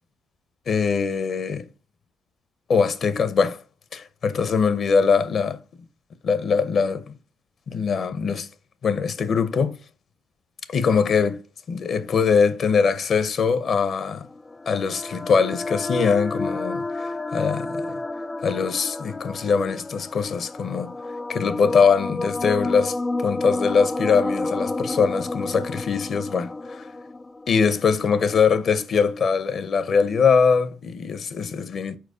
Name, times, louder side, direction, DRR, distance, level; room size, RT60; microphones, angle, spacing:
voice 1, 0.7-1.7 2.7-3.6 3.9-5.6 6.2-7.1 7.7-8.5 8.8-9.8 10.7-11.4 11.7-14.3 14.7-18.0 18.4-20.9 21.3-26.9 27.5-32.0, left 5 dB, 60° left, 0.7 m, -22 dB
sound 1, 14.1-28.2, left 2 dB, 20° left, 0.3 m, -31 dB
4.6 x 4.4 x 4.9 m
supercardioid pair, 65°, 0 cm